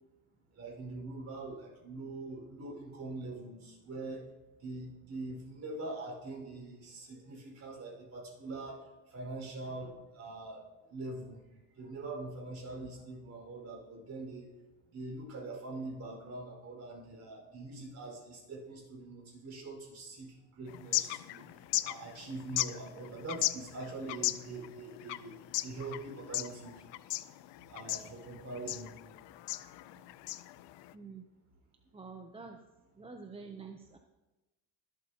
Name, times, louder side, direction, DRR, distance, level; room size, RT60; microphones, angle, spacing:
voice 1, 0.5-4.2 4.6-11.4 11.7-14.6 14.9-26.8 27.7-28.9, right 2 dB, 40° right, -1 dB, 5.0 m, -43 dB
sound 1, 20.7-30.9, left 17 dB, 85° left, 0.6 m, -37 dB
voice 2, 30.9-31.3 31.9-32.6 33.0-34.0, right 4 dB, 15° right, 4 dB, 0.6 m, -47 dB
22.0 x 8.3 x 2.9 m, 1.1 s
cardioid pair, 120°, 41 cm